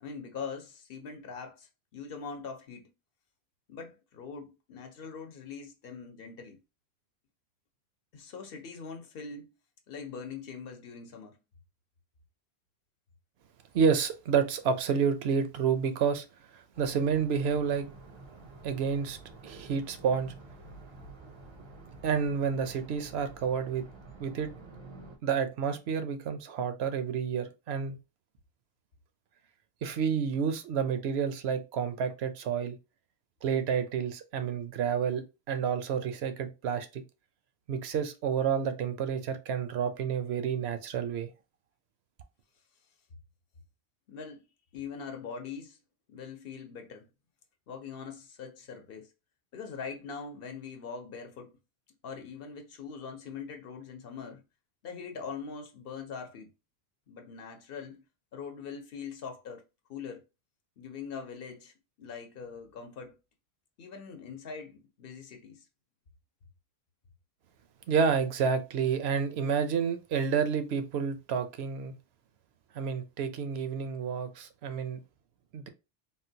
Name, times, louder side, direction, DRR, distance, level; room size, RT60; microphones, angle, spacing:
voice 1, 0.0-2.9 3.7-6.6 8.1-9.5 9.9-11.4 44.1-44.4 44.7-45.8 46.1-47.1 47.7-49.1 49.5-51.6 52.0-54.4 54.8-56.5 57.1-58.0 58.3-59.6 59.9-60.2 60.8-61.7 62.0-63.1 63.8-65.7, left 5 dB, 65° left, 0.8 m, -42 dB
voice 2, 13.7-16.3 16.5-17.9 18.6-19.2 19.4-20.3 22.0-23.8 24.2-24.5 25.2-28.0 29.8-32.8 33.4-37.0 37.7-41.3 67.9-71.9 72.7-75.0 75.5-75.7, right 6 dB, 80° right, 0.8 m, -29 dB
sound 1, 16.7-25.2, right 3 dB, 35° right, 0.5 m, -49 dB
3.7 x 2.2 x 2.7 m
omnidirectional pair, 1.1 m